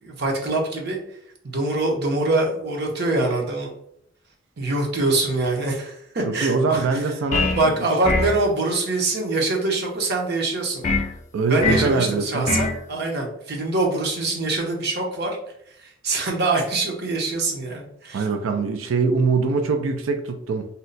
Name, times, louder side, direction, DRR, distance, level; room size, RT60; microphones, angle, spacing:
voice 1, 0.0-1.0 1.4-3.7 4.6-7.0 7.6-10.9 11.5-15.4 15.8-18.2, right 2 dB, 55° right, 1 dB, 0.8 m, -24 dB
voice 2, 6.3-7.9 11.3-12.6 18.1-20.7, right 4 dB, 90° right, 6 dB, 0.4 m, -23 dB
sound 1, 7.3-7.7 8.0-8.4 10.8-11.1 11.6-11.9 12.5-12.8, left 3 dB, 40° left, 0.4 m, -22 dB
2.8 x 2.1 x 3.9 m, 0.72 s
head